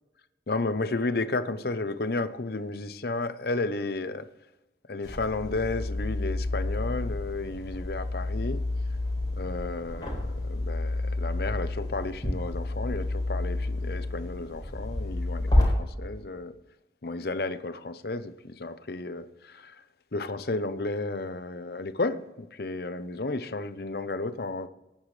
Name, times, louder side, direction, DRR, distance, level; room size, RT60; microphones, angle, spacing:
voice 1, 0.5-4.3 4.9-8.6 9.4-16.5 17.0-19.8 20.1-24.7, left 3 dB, 55° left, 0.7 m, -32 dB
sound 1, 5.0-15.6, left 2 dB, 25° left, 4.2 m, -30 dB
18.0 x 9.2 x 3.3 m
head